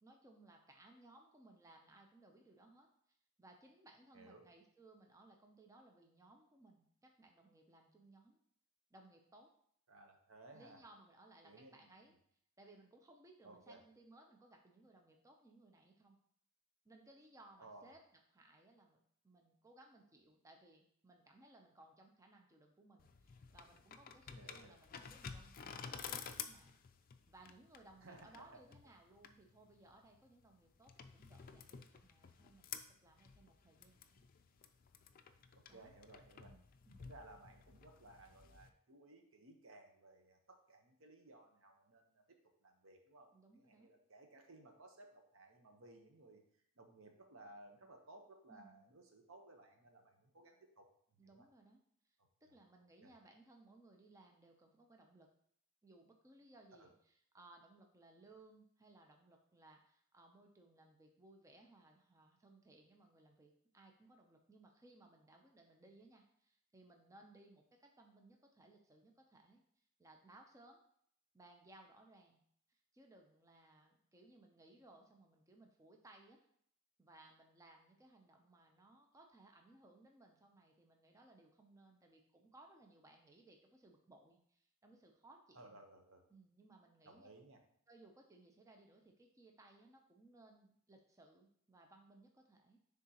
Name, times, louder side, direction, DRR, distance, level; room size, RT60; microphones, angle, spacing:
voice 1, 0.0-8.4 8.9-9.5 10.5-12.2 12.6-16.2 16.8-18.0 18.3-32.7 33.0-34.2 35.7-36.0 36.4-37.0 43.3-43.9 48.5-48.8 51.2-55.3 55.8-70.8 71.3-72.4 72.7-76.4 77.0-85.8 86.3-87.3 87.9-92.8, right 2 dB, 15° right, 2 dB, 0.5 m, -63 dB
voice 2, 4.1-4.5 9.9-10.8 11.4-11.9 13.4-13.8 17.6-17.9 24.4-24.8 28.0-28.5 35.5-36.5 37.0-46.4 46.8-50.9 51.2-51.5 53.0-53.1 56.8-56.9 85.5-86.2 87.0-87.6, right 2 dB, 65° right, 4 dB, 0.9 m, -60 dB
sound 1, 23.0-38.7, left 7 dB, 40° left, 0.4 m, -53 dB
9.9 x 3.6 x 2.9 m, 0.66 s
head